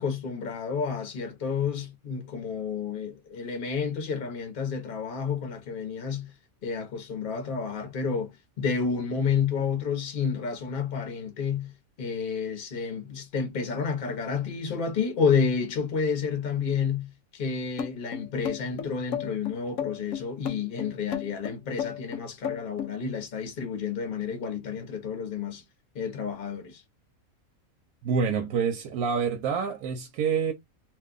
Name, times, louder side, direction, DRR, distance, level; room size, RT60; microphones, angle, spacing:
voice 1, 0.0-6.3 6.6-11.7 12.0-25.6 25.9-26.8, left 6 dB, 45° left, 0.8 m, -30 dB
sound 1, 17.8-22.9, left 9 dB, 70° left, 1.0 m, -33 dB
voice 2, 28.0-30.5, right 6 dB, 85° right, 1.1 m, -27 dB
2.6 x 2.2 x 3.7 m
omnidirectional pair, 1.5 m